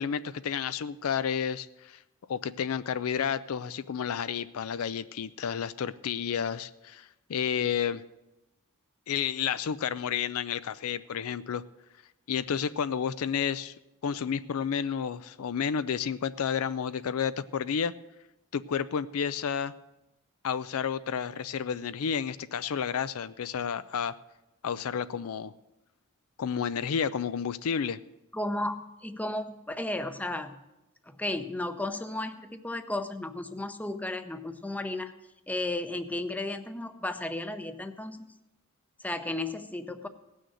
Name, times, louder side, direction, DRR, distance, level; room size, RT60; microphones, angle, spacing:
voice 1, 0.0-2.0 2.3-8.0 9.1-11.6 12.3-13.7 14.0-17.9 18.5-19.7 20.4-24.2 24.6-25.5 26.4-28.0, left 7 dB, 75° left, 15 dB, 0.4 m, -31 dB
voice 2, 28.3-30.6 31.1-35.1 35.5-38.2 39.0-40.1, left 2 dB, 5° left, 9 dB, 0.7 m, -34 dB
17.0 x 6.4 x 7.8 m, 0.96 s
head